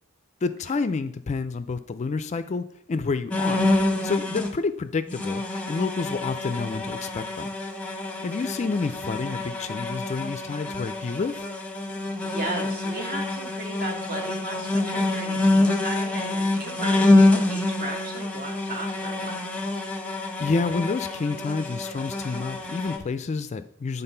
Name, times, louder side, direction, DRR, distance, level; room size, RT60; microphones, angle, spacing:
voice 1, 0.4-3.7 4.0-5.4 5.7-7.5 8.2-11.4 20.4-24.0, left 4 dB, 35° left, 12 dB, 0.3 m, -29 dB
sound 1, 3.3-4.5 5.1-23.0, left 2 dB, 5° left, 0.9 m, -26 dB
voice 2, 12.2-19.5, right 2 dB, 45° right, 2 dB, 1.6 m, -36 dB
7.8 x 3.9 x 5.5 m, 0.67 s
head